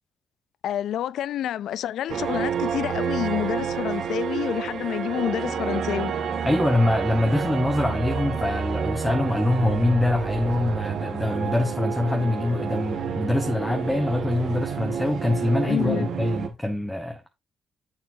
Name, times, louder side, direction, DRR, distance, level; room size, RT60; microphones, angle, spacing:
voice 1, 0.6-6.1 15.6-16.1, left 11 dB, 75° left, 0.3 m, -28 dB
sound 1, 2.1-16.5, right 7 dB, 65° right, 1.8 m, -29 dB
voice 2, 6.4-17.3, left 2 dB, 5° left, 1.2 m, -24 dB
9.8 x 7.1 x 2.7 m
cardioid pair, 90°, 0 cm